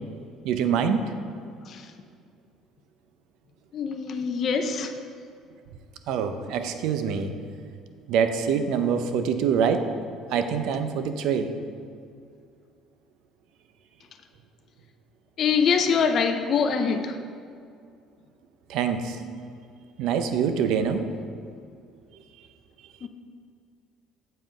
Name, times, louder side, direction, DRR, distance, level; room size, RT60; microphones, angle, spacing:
voice 1, 0.4-1.0 6.1-7.3 8.1-9.8 10.3-11.5 18.7-19.2 20.0-21.1, right 7 dB, 75° right, 8 dB, 0.6 m, -25 dB
voice 2, 3.7-5.0 15.4-17.2 23.0-23.1, left 6 dB, 50° left, 6 dB, 0.6 m, -24 dB
7.7 x 5.4 x 5.0 m, 2.4 s
cardioid pair, 100°, 0 cm